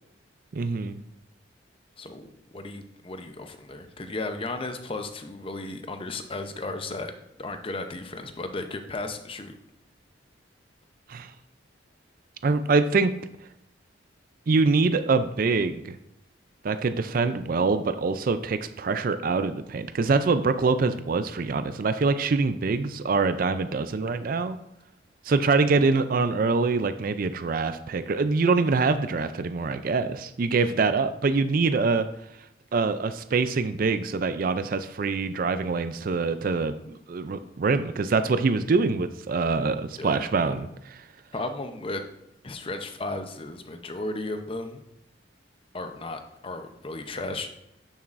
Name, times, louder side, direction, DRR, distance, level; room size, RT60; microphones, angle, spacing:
voice 1, 0.5-1.0 11.1-11.3 12.4-13.1 14.5-16.0 16.6-24.6 25.3-32.1 32.7-41.0, right 4 dB, 50° right, 11 dB, 0.4 m, -24 dB
voice 2, 2.0-2.3 2.5-7.1 7.4-9.5 40.0-40.5 41.3-42.0 42.4-44.8 45.7-47.5, left 2 dB, 30° left, 7 dB, 0.7 m, -35 dB
10.5 x 7.2 x 2.6 m, 0.82 s
head